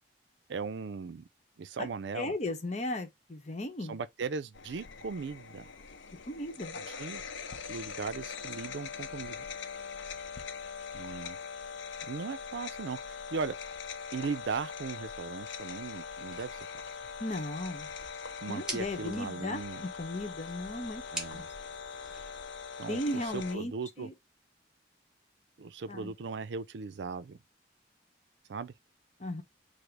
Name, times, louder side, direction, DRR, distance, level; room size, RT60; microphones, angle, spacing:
voice 1, 0.5-1.2 1.6-2.4 3.9-5.7 6.9-7.2 7.7-9.4 10.9-11.4 12.0-13.5 14.1-16.7 18.4-19.9 21.1-21.5 22.8-24.1 25.6-27.4 28.5-28.7, right 5 dB, 75° right, 0.4 m, -38 dB
voice 2, 2.1-4.0 6.3-6.8 17.2-17.9 18.5-21.0 21.3-21.4 22.9-23.7 24.0-24.1 25.9-26.1 29.2-29.4, left 1 dB, 40° left, 0.8 m, -36 dB
sound 1, 4.5-23.6, left 6 dB, 90° left, 0.7 m, -42 dB
sound 2, 16.2-22.5, right 1 dB, 5° right, 1.4 m, -47 dB
4.9 x 2.1 x 4.6 m
head